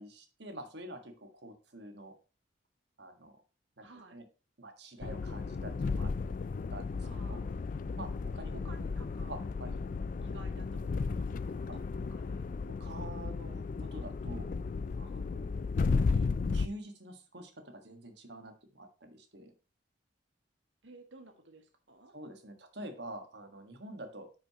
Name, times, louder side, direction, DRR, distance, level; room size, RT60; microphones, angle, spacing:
voice 1, 0.0-2.1 3.0-3.4 3.8-3.9 4.1-4.2 4.6-6.1 6.7-7.4 8.0-8.6 9.3-9.7 11.7-11.8 12.8-14.6 15.0-15.5 16.5-19.5 22.1-24.3, right 1 dB, 60° right, 6 dB, 1.6 m, -47 dB
voice 2, 3.8-4.2 7.0-7.5 8.5-9.4 10.2-12.5 16.1-16.3 20.8-22.1, right 2 dB, 80° right, 6 dB, 1.6 m, -54 dB
sound 1, 5.0-16.7, left 4 dB, 45° left, 0.3 m, -34 dB
9.7 x 6.2 x 2.9 m, 0.34 s
head